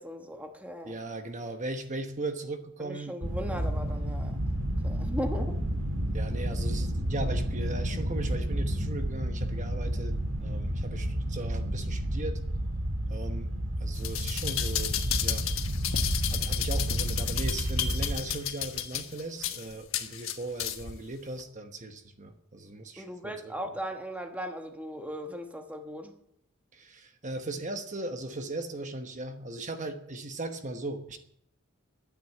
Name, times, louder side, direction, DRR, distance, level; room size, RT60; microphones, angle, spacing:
voice 1, 0.0-0.9 2.8-4.4 4.8-5.6 23.0-26.1, equal, 5° right, 4 dB, 1.1 m, -37 dB
voice 2, 0.8-3.2 6.1-12.4 13.1-13.5 13.8-15.5 16.3-23.5 26.7-31.2, right 2 dB, 35° right, 6 dB, 1.1 m, -38 dB
sound 1, 3.2-18.2, right 1 dB, 60° right, 1.7 m, -31 dB
sound 2, 14.0-21.0 21.4-21.5, left 10 dB, 70° left, 1.3 m, -33 dB
12.0 x 9.5 x 7.7 m, 0.73 s
head